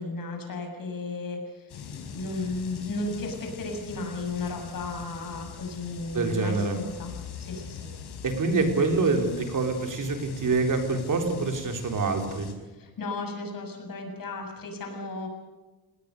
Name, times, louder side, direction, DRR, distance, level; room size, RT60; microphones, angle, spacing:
voice 1, 0.0-7.9 12.8-15.3, left 3 dB, 55° left, 3 dB, 7.0 m, -34 dB
sound 1, 1.7-12.5, left 6 dB, 85° left, 5.3 m, -43 dB
voice 2, 6.1-6.8 8.2-12.5, right 3 dB, 50° right, 4 dB, 4.1 m, -26 dB
29.0 x 19.5 x 6.7 m, 1.2 s
wide cardioid pair, 155°, 39 cm